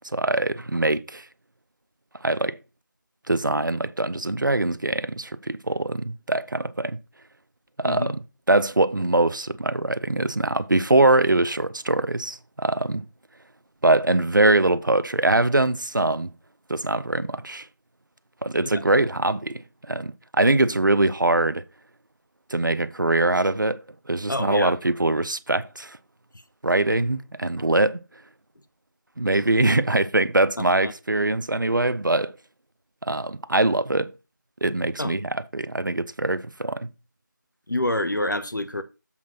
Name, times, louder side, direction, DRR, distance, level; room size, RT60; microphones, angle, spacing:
voice 1, 0.1-1.2 2.2-2.6 3.3-7.0 7.8-8.2 8.5-13.1 13.8-16.3 16.7-17.7 18.4-21.6 22.5-23.8 24.1-26.0 26.6-28.0 29.2-32.3 33.0-34.1 34.6-36.9, right 2 dB, 75° right, 0.6 m, -23 dB
voice 2, 24.3-24.7 30.8-30.9 35.0-35.1 37.7-38.8, left 1 dB, 75° left, 1.1 m, -27 dB
7.4 x 3.8 x 5.7 m
figure-of-eight pair, 170°, 10 cm